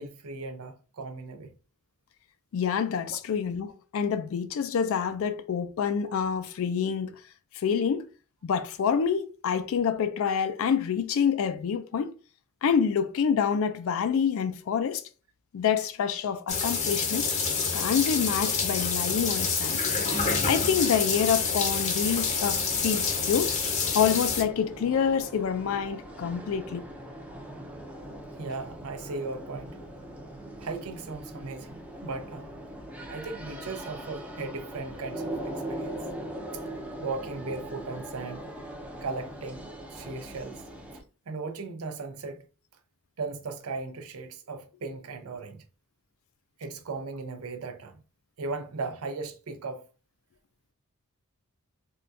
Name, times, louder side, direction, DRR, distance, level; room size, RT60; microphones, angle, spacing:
voice 1, 0.0-1.6 28.4-29.8 30.6-32.5 33.1-36.0 37.0-38.5 39.0-40.6 41.3-42.4 43.2-45.6 46.6-48.0 48.4-49.8, right 3 dB, 85° right, 0.6 m, -37 dB
voice 2, 2.5-7.2 7.5-8.1 8.4-12.1 12.6-15.0 15.5-17.3 17.7-19.8 20.5-23.5 23.9-26.9, left 7 dB, 70° left, 0.4 m, -27 dB
sound 1, 16.5-24.4, left 5 dB, 35° left, 0.6 m, -27 dB
sound 2, 22.0-41.0, right 1 dB, 5° right, 0.5 m, -41 dB
3.5 x 2.2 x 2.5 m
head